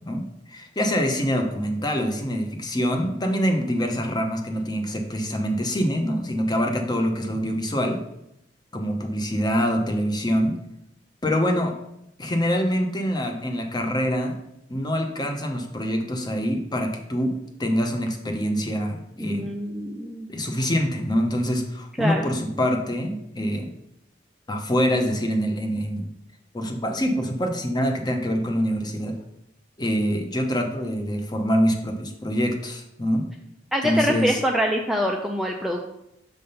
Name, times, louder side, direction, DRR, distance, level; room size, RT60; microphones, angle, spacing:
voice 1, 0.1-8.0 8.7-10.6 11.2-11.7 12.2-14.4 14.7-17.3 17.6-19.5 20.3-23.7 24.5-26.1 26.5-29.2 29.8-33.2 33.8-34.4, equal, 25° left, 4 dB, 0.8 m, -25 dB
voice 2, 19.2-20.3 22.0-22.3 33.7-35.9, equal, ahead, 1 dB, 0.4 m, -25 dB
6.7 x 3.5 x 5.5 m, 0.81 s
head